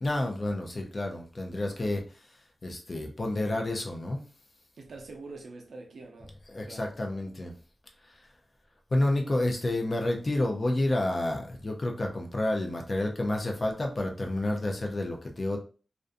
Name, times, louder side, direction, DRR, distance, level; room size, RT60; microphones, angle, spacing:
voice 1, 0.0-2.3 2.6-4.2 6.5-7.6 8.1-8.2 8.9-15.6, left 1 dB, 35° left, 0.5 m, -30 dB
voice 2, 4.7-6.9, right 3 dB, 75° right, 0.6 m, -45 dB
2.5 x 2.2 x 2.5 m
wide cardioid pair, 160°, 0 cm